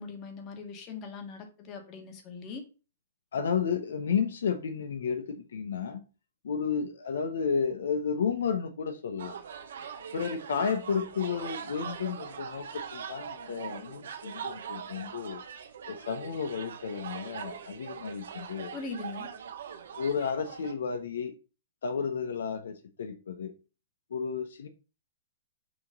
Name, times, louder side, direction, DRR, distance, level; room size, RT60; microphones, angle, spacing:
voice 1, 0.0-2.6 18.7-19.3, left 4 dB, 30° left, 1.6 m, -41 dB
voice 2, 3.3-6.0 6.4-9.4 10.1-15.4 15.9-18.8 19.9-21.3 21.8-23.5 24.1-24.7, left 6 dB, 85° left, 0.8 m, -32 dB
sound 1, 9.2-20.7, right 7 dB, 75° right, 1.0 m, -42 dB
6.2 x 3.0 x 5.3 m
hypercardioid pair, 150°, 0 cm